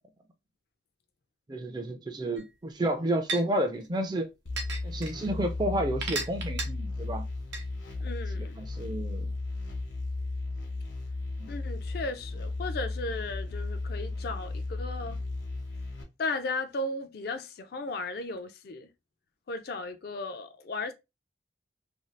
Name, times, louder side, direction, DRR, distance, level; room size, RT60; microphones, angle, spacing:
voice 1, 1.5-4.3 4.8-7.2 8.4-9.3 11.4-11.5, right 1 dB, 20° right, 0.4 m, -31 dB
sound 1, 2.4-2.5 3.3-3.4 4.6-5.1 6.0-6.7 7.5-7.6, right 3 dB, 70° right, 0.7 m, -32 dB
sound 2, 4.5-16.0, left 2 dB, 75° left, 0.9 m, -35 dB
voice 2, 8.0-8.6 11.5-15.2 16.2-18.9 19.5-20.9, left 2 dB, 55° left, 0.4 m, -35 dB
2.6 x 2.3 x 3.1 m
head